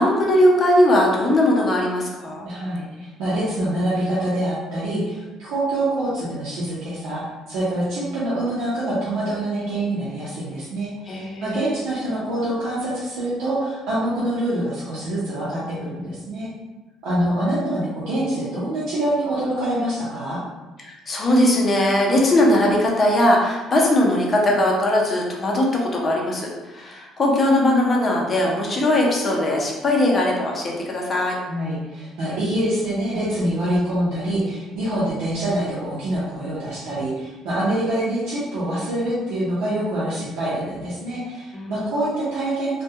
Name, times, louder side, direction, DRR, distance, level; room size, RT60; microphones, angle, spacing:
voice 1, 0.0-2.4 11.1-11.7 20.8-31.4 41.5-41.9, left 1 dB, 30° left, -1 dB, 0.5 m, -19 dB
voice 2, 2.4-16.5 17.0-20.4 31.5-42.8, right 1 dB, 85° right, -9 dB, 0.6 m, -25 dB
2.2 x 2.2 x 2.7 m, 1.1 s
cardioid pair, 125°, 0 cm